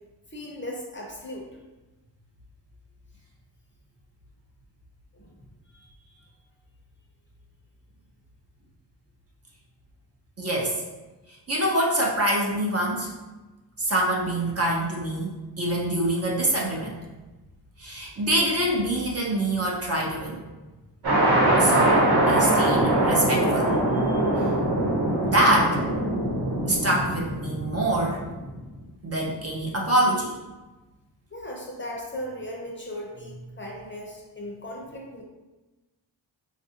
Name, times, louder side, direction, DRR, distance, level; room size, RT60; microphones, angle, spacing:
voice 1, 0.3-1.5 5.2-5.3 31.3-35.2, left 1 dB, 25° left, -2 dB, 0.6 m, -37 dB
voice 2, 10.4-10.8 11.5-13.1 13.8-16.9 17.8-20.4 21.6-23.7 25.2-25.8 26.7-28.2 29.0-30.3, right 1 dB, 35° right, -2 dB, 0.6 m, -25 dB
sound 1, 21.0-28.6, right 1 dB, 60° right, 1.0 m, -22 dB
4.1 x 2.5 x 2.7 m, 1.1 s
wide cardioid pair, 115°, 44 cm